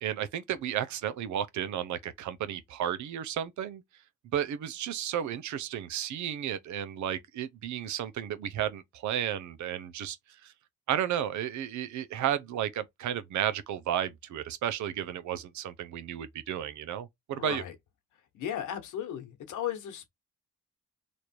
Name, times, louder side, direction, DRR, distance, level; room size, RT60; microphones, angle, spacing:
voice 1, 0.0-3.8 4.3-10.2 10.4-10.5 10.9-17.6, right 10 dB, 70° right, 0.7 m, -33 dB
voice 2, 17.3-17.7 18.3-20.1, left 10 dB, 80° left, 1.2 m, -36 dB
3.2 x 2.5 x 4.4 m
cardioid pair, 90°, 30 cm